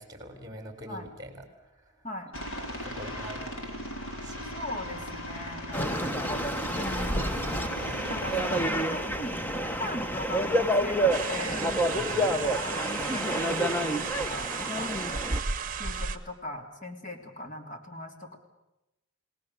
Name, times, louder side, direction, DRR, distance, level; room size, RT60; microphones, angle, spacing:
voice 1, 0.0-2.0 2.8-3.5 4.2-4.5 12.0-12.4, equal, 20° right, 6 dB, 3.5 m, -44 dB
voice 2, 2.0-2.4 4.5-6.1 6.8-7.3 8.1-11.7 12.6-14.9 15.8-18.4, left 1 dB, 35° left, 4 dB, 3.0 m, -39 dB
Aircraft, 2.3-8.6, equal, 70° left, 4.1 m, -38 dB
sound 1, 5.7-15.4, equal, 10° left, 1.1 m, -29 dB
sound 2, 11.1-16.2, right 5 dB, 40° right, 1.2 m, -34 dB
29.5 x 19.0 x 6.8 m, 0.92 s
head